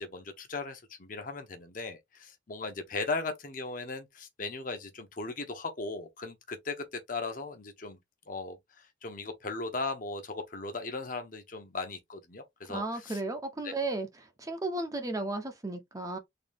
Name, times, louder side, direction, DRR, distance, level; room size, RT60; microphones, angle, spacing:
voice 1, 0.0-8.0 8.3-13.2 13.6-13.8, left 3 dB, 45° left, 0.9 m, -37 dB
voice 2, 12.7-14.1 14.4-16.2, right 2 dB, 20° right, 0.6 m, -34 dB
4.0 x 2.7 x 3.4 m
head